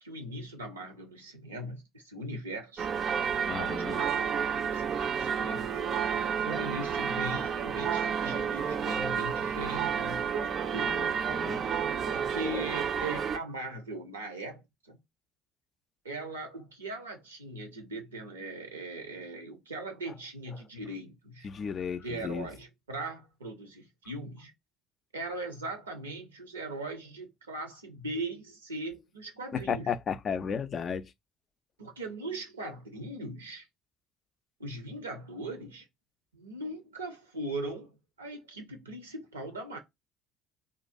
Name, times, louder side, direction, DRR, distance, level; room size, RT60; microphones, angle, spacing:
voice 1, 0.0-2.9 3.4-5.8 6.4-10.9 12.0-15.0 16.0-21.5 22.0-24.5 25.1-29.9 31.8-33.7 34.6-35.9 36.3-37.9 38.2-39.8, right 2 dB, 90° right, 0.6 m, -40 dB
sound 1, 2.8-13.4, right 7 dB, 45° right, 0.4 m, -30 dB
voice 2, 3.5-4.0 10.8-11.6 21.4-22.5 29.5-31.1, left 7 dB, 45° left, 0.3 m, -34 dB
2.5 x 2.3 x 2.4 m
hypercardioid pair, 55°, 0 cm